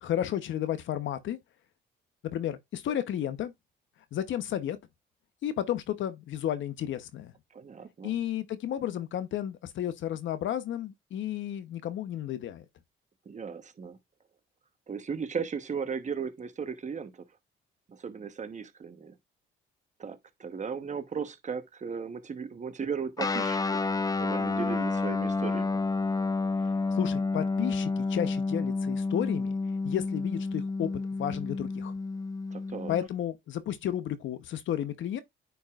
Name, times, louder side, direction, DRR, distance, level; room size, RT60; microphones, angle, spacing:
voice 1, 0.0-1.4 2.3-3.5 4.1-4.8 5.4-7.3 8.0-12.6 26.9-29.5 29.8-30.9 31.2-31.9 32.9-35.2, left 11 dB, 75° left, 1.0 m, -32 dB
voice 2, 7.5-8.1 13.3-14.0 14.9-17.2 17.9-19.2 20.0-23.6 24.2-25.8 32.5-32.9, right 6 dB, 35° right, 1.1 m, -36 dB
Guitar, 23.2-33.1, left 3 dB, 20° left, 0.8 m, -30 dB
9.3 x 4.7 x 2.4 m
cardioid pair, 90°, 20 cm